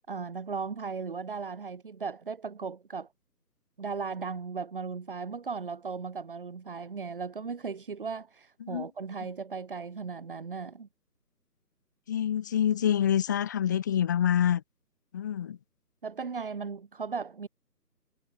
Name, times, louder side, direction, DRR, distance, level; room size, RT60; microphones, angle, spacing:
voice 1, 0.1-3.1 3.8-10.9 16.0-17.5, right 5 dB, 30° right, 7.8 m, -37 dB
voice 2, 12.1-14.6 15.1-15.6, left 9 dB, 10° left, 3.3 m, -26 dB
figure-of-eight pair, 175°, 50 cm